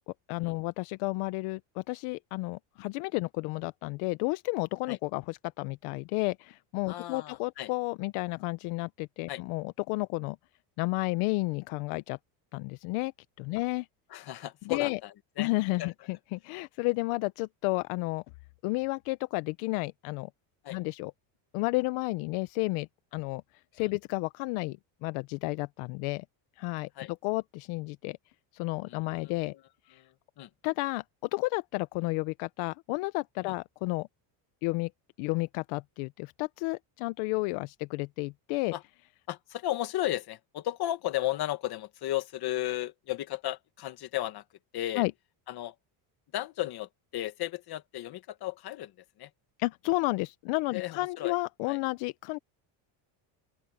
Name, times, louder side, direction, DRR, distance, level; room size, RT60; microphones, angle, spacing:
voice 1, 0.1-10.4 10.8-12.2 12.5-13.1 13.4-13.9 14.7-15.0 15.4-18.2 18.6-20.3 20.7-21.1 21.5-22.9 23.1-23.4 23.7-26.2 26.6-26.9 27.2-28.2 28.5-29.5 29.9-30.0 30.6-34.1 34.6-34.9 35.2-38.7 45.0-45.1 49.6-52.4, left 23 dB, 80° left, 0.7 m, -32 dB
voice 2, 6.9-7.7 9.3-9.4 14.1-15.5 15.8-15.9 20.6-20.8 23.8-23.9 27.0-27.1 28.9-29.6 29.9-30.5 33.4-33.5 38.7-38.8 39.3-44.4 44.7-45.0 45.5-45.7 46.3-48.9 49.2-49.3 50.7-51.4 51.7-51.8, left 14 dB, 50° left, 1.7 m, -35 dB
open air
cardioid pair, 140°, 49 cm